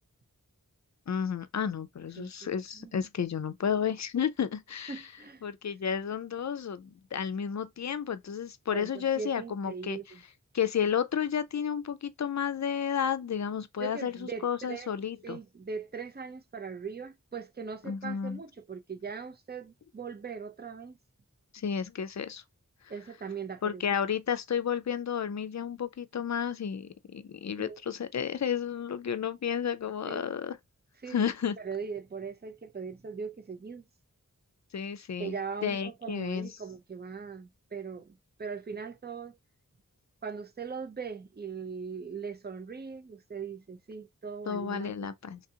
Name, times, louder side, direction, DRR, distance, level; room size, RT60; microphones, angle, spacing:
voice 1, 1.1-5.0 5.4-10.0 10.5-15.4 17.9-18.4 21.5-22.4 23.6-30.6 31.1-31.6 34.7-35.4 35.6-36.5 44.5-45.4, left 7 dB, 55° left, 0.4 m, -32 dB
voice 2, 2.2-2.5 2.7-2.9 4.9-5.4 8.7-10.2 13.8-14.9 15.2-21.0 22.9-23.8 27.6-27.8 30.1-30.3 31.0-31.2 31.6-33.8 35.2-39.4 40.2-44.9, right 5 dB, 30° right, 0.5 m, -40 dB
3.2 x 2.4 x 2.7 m
wide cardioid pair, 55°, 34 cm